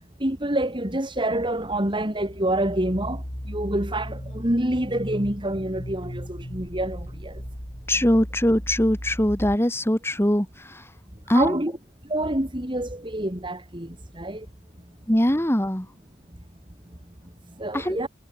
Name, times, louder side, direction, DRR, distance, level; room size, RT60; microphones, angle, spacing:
voice 1, 0.2-7.3 11.3-11.7 12.1-14.4 17.6-18.1, right 1 dB, 25° right, 3.4 m, -27 dB
sound 1, 1.5-9.6, equal, 35° left, 6.7 m, -37 dB
voice 2, 7.9-10.9 11.3-11.6 15.1-15.9 17.7-18.0, left 1 dB, 10° left, 2.2 m, -22 dB
head